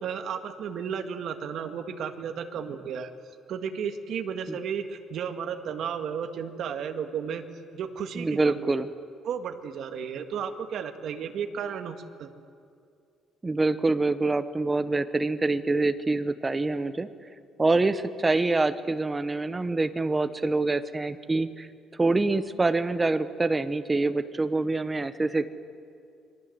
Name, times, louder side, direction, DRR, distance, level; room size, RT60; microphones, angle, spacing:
voice 1, 0.0-3.1 3.5-7.4 7.7-8.8 9.2-12.3, right 7 dB, 55° right, 6 dB, 1.8 m, -33 dB
voice 2, 8.1-8.9 13.4-17.1 17.6-21.7 22.0-25.5, right 3 dB, 15° right, 11 dB, 0.9 m, -25 dB
27.5 x 22.5 x 7.9 m, 2.4 s
cardioid pair, 160°, 0 cm